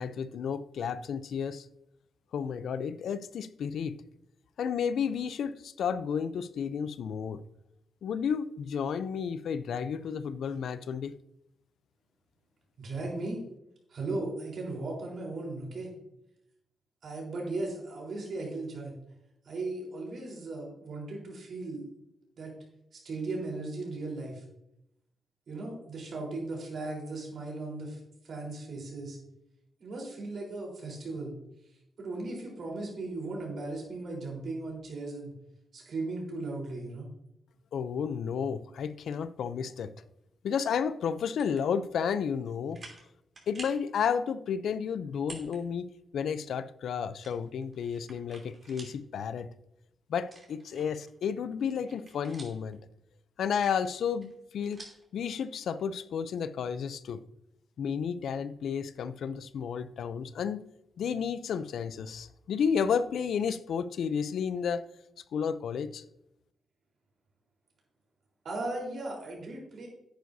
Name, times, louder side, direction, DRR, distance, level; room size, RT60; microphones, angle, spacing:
voice 1, 0.0-1.7 2.3-3.9 4.6-7.4 8.0-11.1 37.7-39.9 40.4-42.8 43.5-45.9 46.1-49.5 50.1-52.8 53.4-54.8 55.1-57.2 57.8-60.6 61.0-64.9 65.3-66.0, left 7 dB, 80° left, 14 dB, 0.5 m, -32 dB
voice 2, 12.8-13.4 13.9-15.9 17.0-18.9 19.5-21.9 22.4-22.5 22.9-24.4 25.5-28.0 28.2-29.2 29.8-31.3 32.0-35.3 35.7-37.1 68.4-69.9, right 2 dB, 65° right, -2 dB, 3.9 m, -37 dB
sound 1, 41.1-41.6 42.2-42.3 42.7-43.1 43.4-43.8 45.2-45.6 46.0-46.1 47.2-49.0 49.4-49.5 50.2-51.1 51.5-52.7 53.5-55.1, right 3 dB, 40° right, 3.1 m, -49 dB
10.5 x 9.5 x 2.7 m, 0.83 s
cardioid pair, 105°, 0 cm